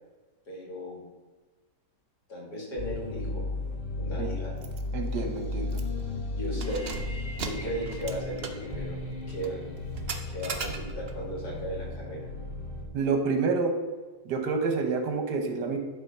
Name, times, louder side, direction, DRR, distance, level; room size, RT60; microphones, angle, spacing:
voice 1, 0.5-1.0 2.3-3.5 4.0-4.5 6.4-9.0 9.3-9.7 10.3-12.2, equal, 70° left, -3 dB, 2.9 m, -36 dB
sound 1, 2.8-12.9, left 2 dB, 35° left, 1.2 m, -35 dB
Keys jangling, 4.6-4.8 5.1-5.2 5.7-6.1 6.5-11.2, right 4 dB, 50° right, 0.8 m, -38 dB
voice 2, 4.9-5.8 12.9-13.7 14.2-15.8, right 4 dB, 80° right, 5 dB, 1.6 m, -28 dB
11.0 x 3.8 x 5.3 m, 1.3 s
omnidirectional pair, 1.8 m